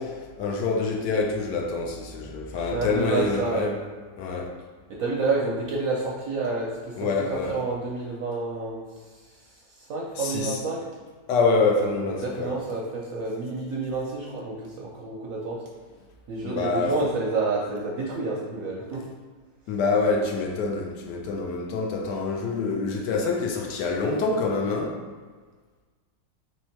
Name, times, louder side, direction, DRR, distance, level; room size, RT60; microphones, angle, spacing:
voice 1, 0.0-3.8 4.2-4.5 7.0-7.6 10.1-10.6 11.3-12.6 16.4-17.0 19.7-25.0, left 3 dB, 75° left, 1 dB, 1.2 m, -26 dB
voice 2, 2.7-3.7 5.0-8.8 9.8-10.8 12.2-15.6 16.3-19.0, right 3 dB, 65° right, -3 dB, 0.8 m, -29 dB
3.4 x 3.1 x 4.4 m, 1.4 s
omnidirectional pair, 2.0 m